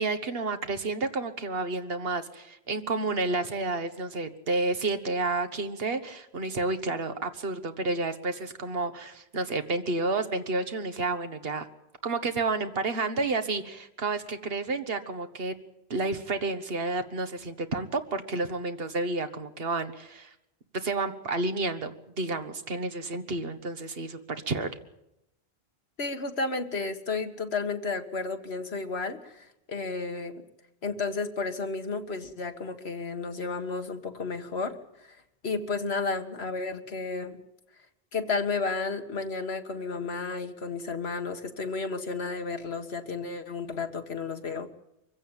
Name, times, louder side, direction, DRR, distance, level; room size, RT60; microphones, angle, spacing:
voice 1, 0.0-11.7 12.0-15.5 15.9-20.3 20.7-24.7, right 3 dB, 70° right, 8 dB, 1.7 m, -30 dB
voice 2, 26.0-30.4 30.8-35.2 35.4-37.4 38.1-44.7, left 4 dB, 85° left, 7 dB, 2.0 m, -32 dB
24.0 x 16.0 x 9.0 m, 0.84 s
omnidirectional pair, 1.0 m